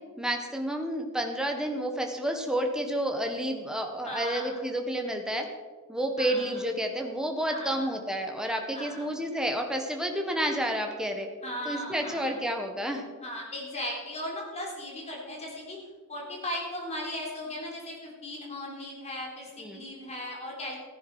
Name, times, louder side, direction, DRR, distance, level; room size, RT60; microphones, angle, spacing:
voice 1, 0.2-5.5 5.9-11.3 11.6-13.0 19.6-19.8, right 1 dB, 5° right, 3 dB, 1.4 m, -30 dB
voice 2, 4.0-4.6 6.2-6.6 7.5-7.9 8.7-9.3 11.4-12.4 13.2-15.8 16.1-20.8, left 1 dB, 30° left, -2 dB, 3.9 m, -37 dB
15.0 x 10.5 x 4.9 m, 1.4 s
head